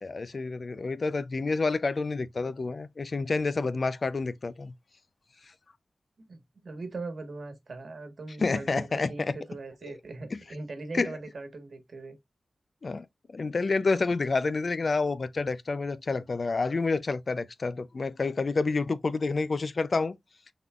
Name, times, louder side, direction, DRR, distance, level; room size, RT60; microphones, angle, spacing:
voice 1, 0.0-4.7 8.4-9.4 9.8-9.9 10.3-10.4 10.9-11.2 12.8-20.2, left 3 dB, 55° left, 0.4 m, -29 dB
voice 2, 6.2-12.1, right 3 dB, 65° right, 1.3 m, -40 dB
5.7 x 3.7 x 2.3 m
wide cardioid pair, 80°, 0 cm